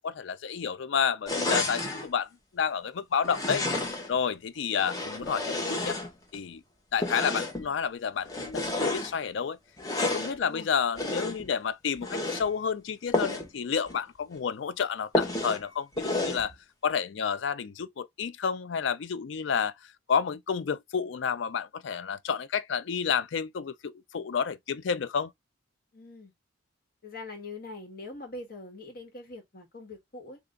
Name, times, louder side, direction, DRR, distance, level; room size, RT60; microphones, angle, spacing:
voice 1, 0.0-3.7 4.1-6.0 6.3-6.6 6.9-9.6 10.0-16.5 16.8-19.7 20.1-25.3, left 7 dB, 70° left, 0.4 m, -30 dB
sound 1, 1.3-2.1 3.2-4.2 4.7-6.4 7.0-7.7 8.3-9.1 9.8-10.4 11.0-11.5 12.0-12.5 13.1-13.5 13.9-14.0 14.3-14.4 15.1-15.6 16.0-16.5, left 2 dB, 20° left, 0.8 m, -30 dB
voice 2, 10.4-10.7 25.9-26.3 27.0-30.4, left 2 dB, 50° left, 1.3 m, -43 dB
3.4 x 2.4 x 3.7 m
head